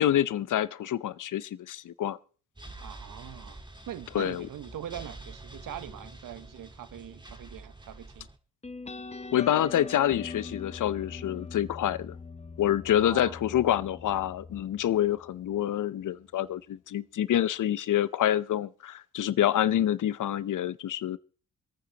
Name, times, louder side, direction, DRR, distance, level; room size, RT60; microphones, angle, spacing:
voice 1, 0.0-2.2 4.1-4.5 9.3-12.1 12.6-21.2, left 11 dB, 65° left, 0.7 m, -27 dB
sound 1, 2.6-8.4, right 2 dB, 15° right, 1.5 m, -47 dB
voice 2, 2.8-8.3 12.9-13.4, right 10 dB, 75° right, 0.8 m, -42 dB
sound 2, 8.6-15.8, left 4 dB, 20° left, 0.8 m, -42 dB
27.5 x 9.4 x 2.9 m
cardioid pair, 60°, 33 cm